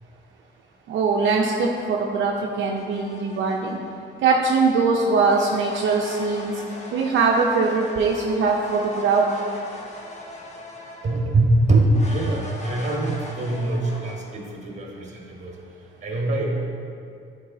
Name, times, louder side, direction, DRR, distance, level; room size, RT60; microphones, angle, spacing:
voice 1, 0.9-3.8 4.2-6.6 6.9-9.3, right 4 dB, 75° right, -1 dB, 0.6 m, -21 dB
sound 1, 2.7-4.0 5.1-11.3 11.9-14.1, left 1 dB, 35° left, 1.1 m, -40 dB
voice 2, 11.0-15.5 16.0-16.4, right 2 dB, 35° right, -1 dB, 1.5 m, -23 dB
9.7 x 4.7 x 2.7 m, 2.4 s
cardioid pair, 90°, 20 cm